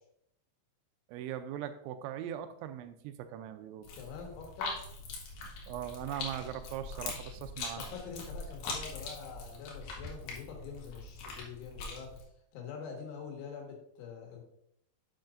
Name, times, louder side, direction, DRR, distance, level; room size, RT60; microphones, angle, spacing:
voice 1, 1.1-3.9 5.7-7.8, right 10 dB, 85° right, 9 dB, 2.8 m, -40 dB
sound 1, 3.8-12.2, left 3 dB, 65° left, 3.1 m, -42 dB
voice 2, 3.9-4.8 7.8-12.2 12.5-14.4, left 6 dB, 85° left, 1 dB, 4.1 m, -45 dB
10.5 x 7.2 x 2.5 m, 0.74 s
omnidirectional pair, 5.4 m